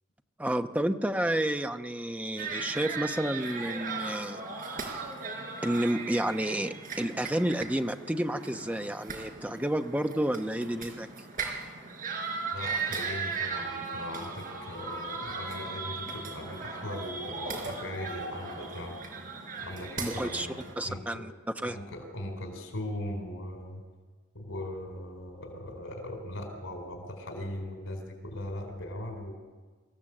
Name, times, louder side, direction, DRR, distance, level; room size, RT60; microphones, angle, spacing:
voice 1, 0.4-4.4 4.9-5.1 5.6-11.1 20.0-20.5 20.8-21.8, right 1 dB, 5° right, 6 dB, 0.9 m, -30 dB
sound 1, 2.4-20.7, right 4 dB, 45° right, 4.2 m, -37 dB
voice 2, 12.5-19.0 19.6-21.2 21.6-23.8 24.3-29.3, left 1 dB, 90° left, 4 dB, 4.2 m, -39 dB
25.5 x 15.5 x 7.8 m, 1.4 s
head